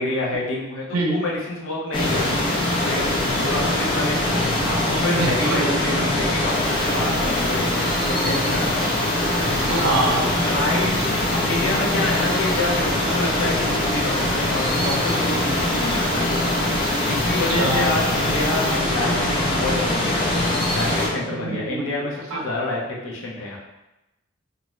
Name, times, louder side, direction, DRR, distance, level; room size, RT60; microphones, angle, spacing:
voice 1, 0.0-2.5 2.8-3.0 3.3-9.1 9.7-9.8 10.4-11.1 11.5-16.5 17.1-20.3 20.8-23.6, left 2 dB, 65° left, -4 dB, 0.7 m, -28 dB
sound 1, 1.9-21.1, left 1 dB, 20° left, 0.4 m, -22 dB
voice 2, 5.1-6.0 9.7-10.4 17.6-17.8 21.4-22.4, right 2 dB, 80° right, -1 dB, 0.6 m, -25 dB
2.5 x 2.2 x 3.0 m, 0.96 s
head